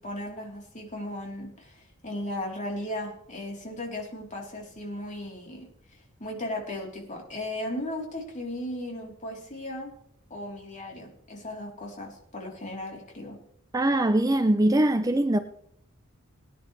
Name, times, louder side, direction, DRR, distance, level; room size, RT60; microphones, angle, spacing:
voice 1, 0.0-9.9 10.3-13.4, left 1 dB, 35° left, 3.7 m, -36 dB
voice 2, 13.7-15.4, right 1 dB, 15° right, 0.5 m, -22 dB
19.5 x 10.0 x 3.3 m
head